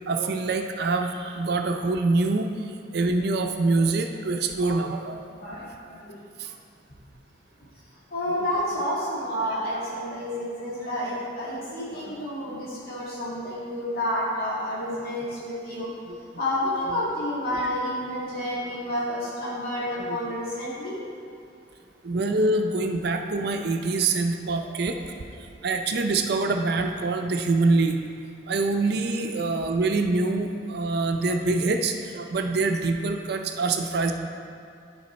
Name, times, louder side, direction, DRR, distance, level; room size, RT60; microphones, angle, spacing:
voice 1, 0.1-5.2 6.4-6.6 8.3-8.4 16.1-16.2 20.0-20.1 22.0-25.0 25.4-28.0 28.5-34.1, right 3 dB, 60° right, 5 dB, 0.5 m, -25 dB
voice 2, 5.4-6.1 8.1-15.9 16.3-21.0, left 1 dB, 55° left, -8 dB, 1.8 m, -30 dB
10.5 x 4.8 x 4.3 m, 2.5 s
head